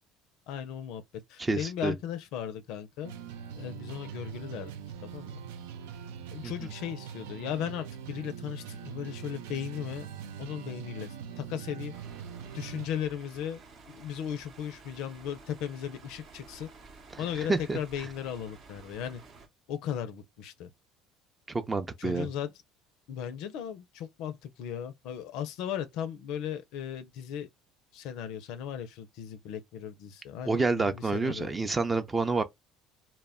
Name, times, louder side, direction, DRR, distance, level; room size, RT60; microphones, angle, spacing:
voice 1, 0.5-1.0 1.3-3.2 3.6-4.7 5.0-5.3 6.3-10.1 10.4-11.9 12.5-13.6 13.9-16.7 17.2-19.2 19.7-20.7 22.0-22.5 23.1-27.5 27.9-31.5, left 9 dB, 70° left, 0.4 m, -36 dB
voice 2, 1.4-1.9 17.1-17.2 17.5-17.8 21.5-22.3 30.5-32.4, right 3 dB, 25° right, 0.5 m, -28 dB
sound 1, 3.0-12.9, right 8 dB, 85° right, 0.3 m, -42 dB
sound 2, 11.9-19.5, right 4 dB, 55° right, 0.7 m, -52 dB
2.1 x 2.1 x 3.5 m
hypercardioid pair, 75°, 0 cm